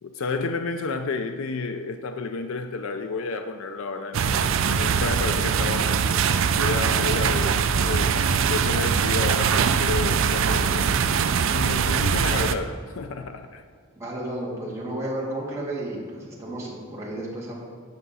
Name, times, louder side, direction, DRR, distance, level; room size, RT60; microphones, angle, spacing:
voice 1, 0.0-4.5 4.8-6.2 6.5-8.2 8.5-11.1 11.4-13.6, left 4 dB, 70° left, 7 dB, 0.4 m, -31 dB
sound 1, 4.1-12.6, right 6 dB, 60° right, 0.4 m, -22 dB
voice 2, 14.0-17.5, right 1 dB, 15° right, -6 dB, 1.8 m, -32 dB
9.6 x 5.8 x 4.1 m, 2.1 s
head